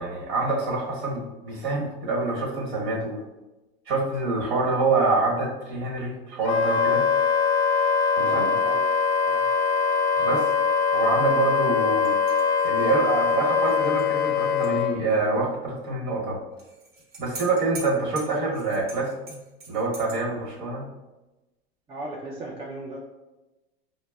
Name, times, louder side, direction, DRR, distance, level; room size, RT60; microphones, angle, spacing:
voice 1, 0.0-3.2 3.9-7.1 8.1-8.5 10.2-10.5 10.9-12.2 12.6-16.4 17.2-19.1 19.7-20.9, right 3 dB, 60° right, -2 dB, 1.3 m, -26 dB
Wind instrument woodwind instrument, 6.4-15.0, left 5 dB, 75° left, 0.5 m, -22 dB
voice 2, 8.2-8.8 9.3-9.5 21.9-23.0, right 1 dB, 15° right, -2 dB, 0.4 m, -36 dB
sound 1, 12.0-14.8 15.1-15.2 16.6-20.2, right 3 dB, 40° right, 1.0 m, -44 dB
4.9 x 2.0 x 2.3 m, 1.1 s
hypercardioid pair, 100°, 32 cm